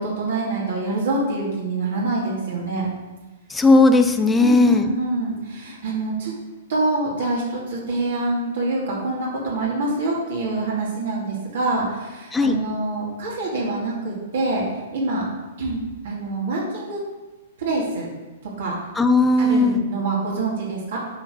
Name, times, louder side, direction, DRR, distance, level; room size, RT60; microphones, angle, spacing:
voice 1, 0.0-2.9 4.4-6.3 6.7-14.6 14.9-15.2 15.6-17.0 17.6-18.1 18.6-18.8 19.4-21.0, right 2 dB, 70° right, -4 dB, 2.4 m, -25 dB
voice 2, 3.5-4.9 12.3-12.6 19.0-19.8, left 2 dB, 10° left, 7 dB, 0.7 m, -16 dB
8.4 x 4.9 x 5.0 m, 1.1 s
hypercardioid pair, 125°, 0 cm